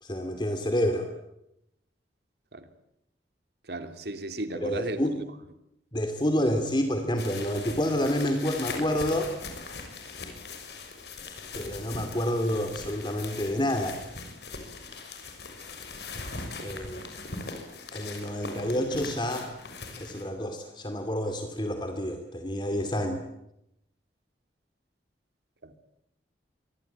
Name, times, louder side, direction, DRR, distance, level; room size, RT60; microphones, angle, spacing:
voice 1, 0.0-1.1 4.5-5.2 5.9-9.3 11.5-14.0 16.6-17.1 17.9-19.5 20.0-23.2, equal, 25° left, 2.5 m, -28 dB
voice 2, 3.7-5.2 16.6-16.8 25.6-25.7, right 1 dB, 65° right, 3.0 m, -35 dB
sound 1, 7.2-20.2, left 3 dB, 70° left, 6.6 m, -40 dB
26.5 x 23.5 x 9.1 m
head